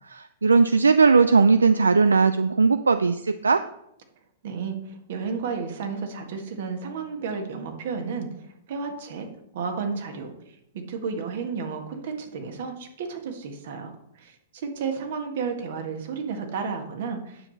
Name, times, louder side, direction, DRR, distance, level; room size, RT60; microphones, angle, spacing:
voice 1, 0.1-3.6, right 4 dB, 80° right, 11 dB, 0.4 m, -18 dB
voice 2, 4.4-8.3 8.7-9.3 9.5-10.3 10.7-13.9 14.2-17.5, right 5 dB, 55° right, 5 dB, 1.7 m, -32 dB
9.5 x 7.1 x 4.1 m, 0.78 s
figure-of-eight pair, 105°, 0 cm